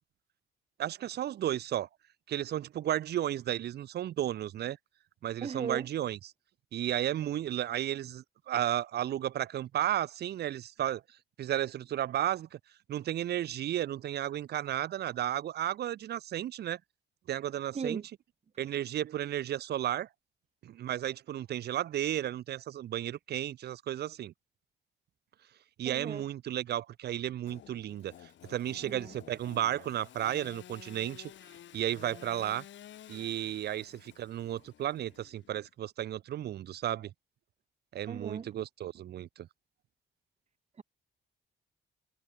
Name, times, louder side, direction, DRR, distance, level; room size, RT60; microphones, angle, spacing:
voice 1, 0.8-1.9 2.3-4.8 5.2-6.2 6.7-11.0 11.4-12.6 12.9-16.8 17.3-18.0 18.6-20.1 20.6-24.3 25.8-28.1 28.5-31.3 31.7-32.6 33.1-37.1 37.9-39.5, right 11 dB, 55° right, 0.5 m, -33 dB
voice 2, 5.4-5.9 17.7-18.1 25.9-26.2 28.9-29.1 38.1-38.5 40.8-40.9, right 6 dB, 35° right, 1.0 m, -37 dB
Engine / Sawing, 27.4-35.7, left 11 dB, 70° left, 2.6 m, -52 dB
cardioid pair, 90°, 20 cm